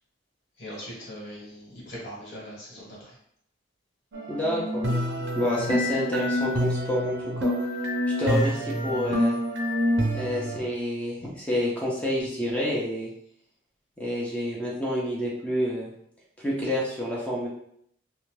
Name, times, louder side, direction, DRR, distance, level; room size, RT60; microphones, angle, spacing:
voice 1, 0.6-3.1, equal, 55° left, -6 dB, 1.3 m, -40 dB
sound 1, 4.1-10.6, equal, 60° right, 0.5 m, -27 dB
voice 2, 4.3-7.2 7.4-7.5 8.2-9.4 10.1-13.1 14.0-15.9 16.4-17.5, left 1 dB, 5° left, -5 dB, 0.6 m, -28 dB
2.7 x 2.2 x 3.1 m, 0.70 s
head